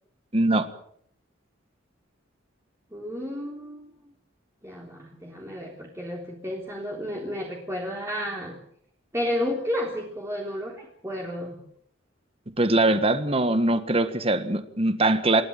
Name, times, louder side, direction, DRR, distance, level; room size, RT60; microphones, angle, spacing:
voice 1, 0.3-0.7 12.6-15.4, right 2 dB, 30° right, 10 dB, 1.7 m, -22 dB
voice 2, 2.9-3.9 4.6-8.5 9.1-11.6, equal, 15° right, -2 dB, 3.6 m, -32 dB
28.0 x 13.0 x 8.9 m, 0.67 s
head